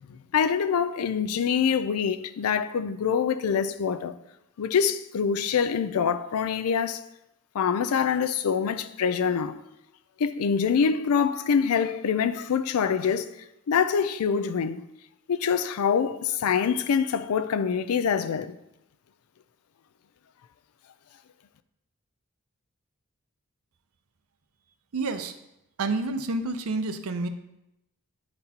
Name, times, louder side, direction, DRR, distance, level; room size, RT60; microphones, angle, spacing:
voice 1, 0.3-4.2 4.6-7.0 7.5-9.6 10.2-13.3 13.7-14.8 15.3-18.5, left 6 dB, 85° left, 0.4 m, -25 dB
voice 2, 24.9-25.3 25.8-27.3, right 3 dB, 80° right, 0.6 m, -29 dB
10.5 x 4.0 x 2.8 m
head